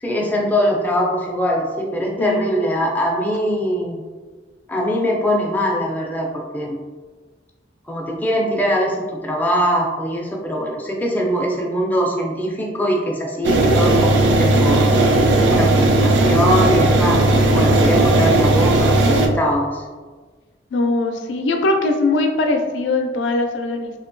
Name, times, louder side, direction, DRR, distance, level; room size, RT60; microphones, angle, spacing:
voice 1, 0.0-4.0 4.7-6.8 7.9-15.0 15.5-19.8, equal, 10° left, -1 dB, 0.3 m, -22 dB
sound 1, 13.4-19.3, right 2 dB, 75° right, 0.3 m, -15 dB
voice 2, 20.7-23.9, left 2 dB, 85° left, 4 dB, 0.4 m, -21 dB
2.8 x 2.2 x 2.5 m, 1.3 s
head